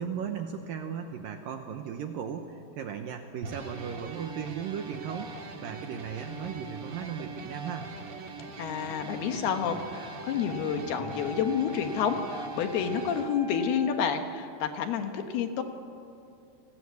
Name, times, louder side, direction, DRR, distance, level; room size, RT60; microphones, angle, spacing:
voice 1, 0.0-7.9, right 7 dB, 70° right, 5 dB, 2.2 m, -36 dB
sound 1, 3.4-13.2, right 3 dB, 45° right, 2.3 m, -42 dB
voice 2, 8.6-15.6, left 7 dB, 70° left, 6 dB, 3.0 m, -29 dB
Wind instrument woodwind instrument, 9.7-14.1, left 2 dB, 85° right, 9.1 m, -43 dB
30.0 x 19.5 x 8.4 m, 2.5 s
omnidirectional pair, 5.1 m